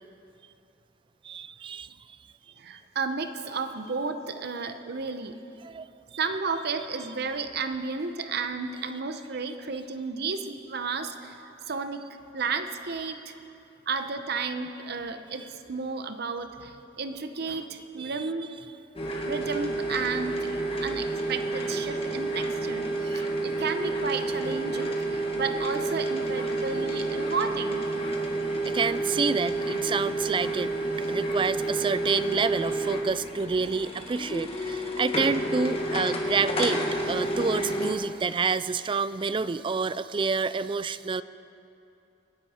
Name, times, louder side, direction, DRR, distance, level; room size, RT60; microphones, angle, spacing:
voice 1, 1.2-1.9 5.6-5.9 18.0-18.2 23.1-23.2 28.6-41.2, right 4 dB, 25° right, 15 dB, 0.3 m, -28 dB
voice 2, 2.6-5.4 6.2-11.4 11.7-12.1 12.3-13.3 13.9-18.5 19.1-27.9, right 4 dB, 60° right, 9 dB, 0.8 m, -32 dB
sound 1, 19.0-37.9, right 2 dB, 30° left, 1.6 m, -30 dB
25.0 x 10.5 x 4.3 m, 2.8 s
head